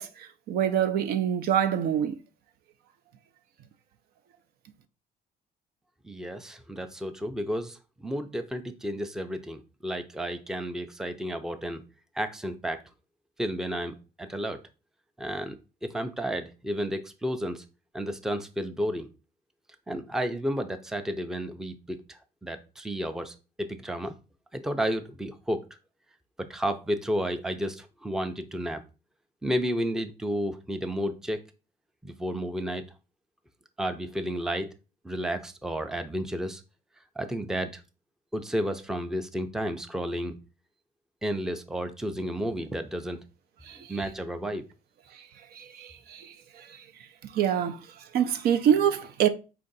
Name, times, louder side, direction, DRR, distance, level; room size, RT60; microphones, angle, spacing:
voice 1, 0.0-2.2 43.7-44.0 45.1-46.8 47.2-47.8 48.1-49.3, right 9 dB, 65° right, 0.5 m, -26 dB
voice 2, 6.0-11.8 12.1-12.8 13.4-14.6 15.2-15.6 15.8-17.6 17.9-19.1 19.9-24.2 24.5-25.7 26.4-28.8 29.4-31.4 32.0-32.8 33.8-34.7 35.0-36.6 37.2-37.8 38.3-40.4 41.2-43.2 43.7-44.7, equal, 5° right, 0.4 m, -32 dB
4.5 x 2.5 x 3.9 m
cardioid pair, 110°, 17 cm